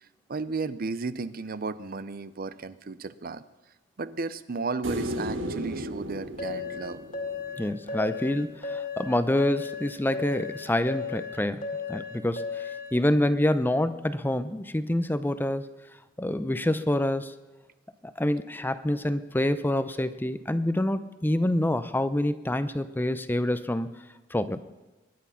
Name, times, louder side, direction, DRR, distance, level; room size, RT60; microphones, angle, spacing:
voice 1, 0.3-3.4 4.0-7.0, right 4 dB, 50° right, 15 dB, 0.6 m, -34 dB
sound 1, 4.8-8.1 10.7-10.8, right 1 dB, 80° right, 1.7 m, -35 dB
sound 2, 6.4-12.9, left 5 dB, 45° left, 2.0 m, -35 dB
voice 2, 7.6-11.6 11.9-15.7 16.2-17.3 18.2-23.9 24.3-24.6, left 1 dB, 10° left, 12 dB, 0.6 m, -27 dB
23.0 x 10.5 x 5.7 m, 1.1 s
head